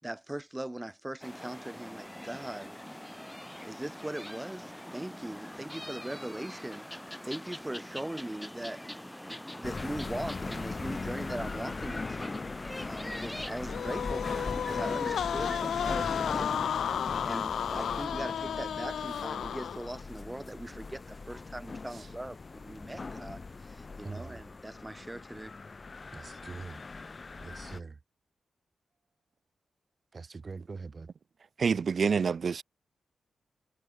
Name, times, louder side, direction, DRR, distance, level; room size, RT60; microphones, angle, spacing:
voice 1, 0.0-2.7 3.6-6.9 7.2-9.1 9.6-12.4 12.8-16.9 17.2-25.5, right 1 dB, 10° right, 4.8 m, -40 dB
sound 1, 1.2-18.1, left 1 dB, 5° left, 4.4 m, -44 dB
sound 2, 9.6-27.8, left 4 dB, 35° left, 2.7 m, -40 dB
sound 3, 13.7-20.0, left 8 dB, 90° left, 0.6 m, -33 dB
voice 2, 24.0-24.4 26.1-26.8 27.4-28.0 30.1-31.1, right 4 dB, 40° right, 5.6 m, -43 dB
voice 3, 31.6-32.6, right 6 dB, 55° right, 0.5 m, -27 dB
cardioid pair, 90°, 0 cm